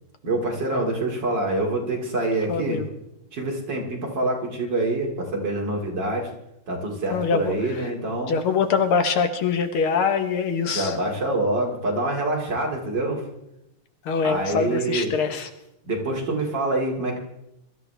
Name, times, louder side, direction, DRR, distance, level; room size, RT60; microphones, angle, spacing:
voice 1, 0.2-2.8 3.3-6.3 6.7-8.4 10.7-13.2 14.2-15.1 15.8-17.2, right 2 dB, 55° right, -1 dB, 3.2 m, -26 dB
voice 2, 2.5-2.9 7.1-7.5 8.3-10.9 14.1-15.5, left 5 dB, 80° left, 7 dB, 2.1 m, -23 dB
23.0 x 13.5 x 3.4 m, 0.84 s
omnidirectional pair, 2.3 m